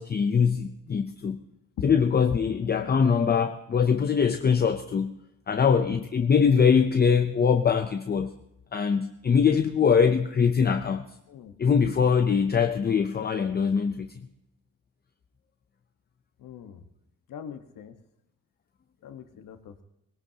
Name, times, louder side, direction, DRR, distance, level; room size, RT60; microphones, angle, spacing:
voice 1, 0.0-1.4 1.8-5.2 5.5-8.3 8.7-11.1 11.6-14.1, left 6 dB, 30° left, 7 dB, 0.6 m, -23 dB
voice 2, 16.4-16.8 17.3-17.9 19.0-19.8, left 8 dB, 75° left, 7 dB, 1.4 m, -43 dB
20.5 x 17.5 x 2.9 m, 0.85 s
cardioid pair, 130°, 33 cm